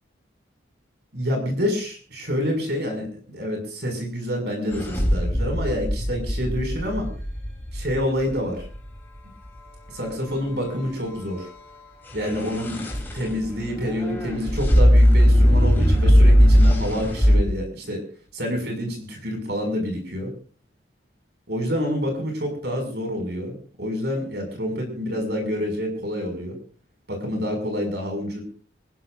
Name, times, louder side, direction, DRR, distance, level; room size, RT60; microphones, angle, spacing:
voice 1, 1.1-7.1 7.7-8.6 9.9-11.5 12.1-12.8 13.1-18.0 18.3-20.3 21.5-26.5 27.1-28.4, equal, 60° right, 3 dB, 6.2 m, -27 dB
sound 1, 4.7-8.8 12.1-17.4, equal, 10° left, 3.3 m, -19 dB
27.0 x 15.5 x 2.6 m, 0.41 s
head